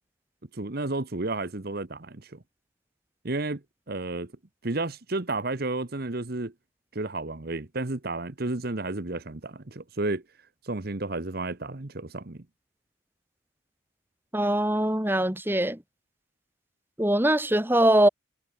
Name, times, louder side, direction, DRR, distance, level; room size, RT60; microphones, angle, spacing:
voice 1, 0.5-2.4 3.2-3.6 3.9-4.3 4.6-6.5 6.9-10.2 10.6-12.4, right 2 dB, 50° right, 1.1 m, -32 dB
voice 2, 14.3-15.8 17.0-18.1, right 1 dB, 10° right, 2.0 m, -22 dB
head